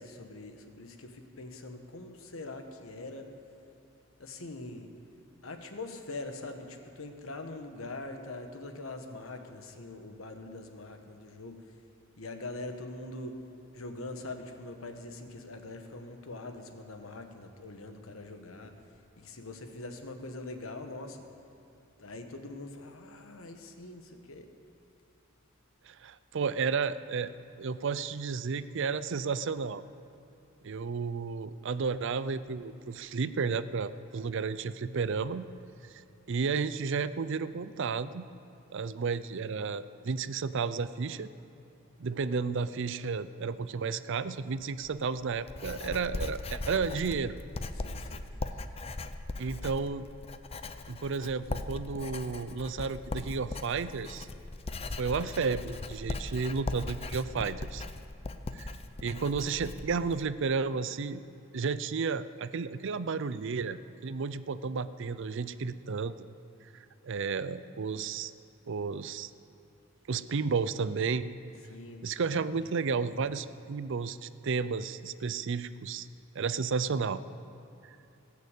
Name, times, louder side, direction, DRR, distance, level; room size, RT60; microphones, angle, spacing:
voice 1, 0.0-3.3 4.2-4.9 5.4-11.6 12.2-13.4 13.7-18.7 19.2-21.2 22.0-24.5 47.7-48.2 71.6-73.2, left 2 dB, 90° left, 6 dB, 1.3 m, -43 dB
voice 2, 25.9-27.3 27.6-29.8 30.6-35.5 36.3-38.2 38.7-41.3 42.0-47.4 49.4-50.1 50.9-54.3 55.0-57.8 58.5-58.7 59.0-61.2 61.5-66.3 67.0-68.3 68.7-69.3 70.1-71.3 72.0-76.1 76.4-77.2 77.8-77.9, right 5 dB, 65° right, 14 dB, 0.5 m, -32 dB
Writing, 44.8-60.2, left 2 dB, 30° left, 0.6 m, -39 dB
20.0 x 6.8 x 8.2 m, 2.9 s
head